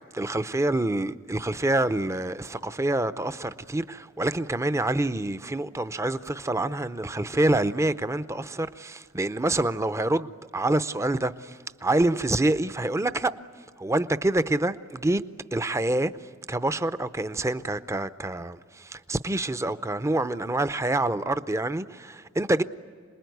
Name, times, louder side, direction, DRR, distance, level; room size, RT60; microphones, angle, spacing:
voice 1, 0.1-13.3 13.8-15.2 15.5-16.1 16.5-22.6, right 2 dB, 15° right, 0.6 m, -26 dB
27.0 x 20.5 x 9.3 m
head